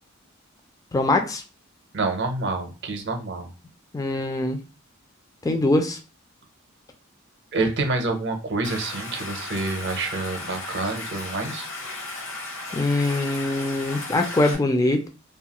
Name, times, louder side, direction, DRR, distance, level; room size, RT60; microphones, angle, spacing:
voice 1, 0.9-1.4 3.9-4.6 5.4-6.0 12.7-15.1, left 2 dB, 15° left, 4 dB, 0.3 m, -23 dB
voice 2, 1.9-3.5 7.5-11.7, right 3 dB, 55° right, 5 dB, 0.6 m, -27 dB
Stream, 8.6-14.5, left 2 dB, 65° left, 0.8 m, -35 dB
2.7 x 2.3 x 2.9 m, 0.32 s
head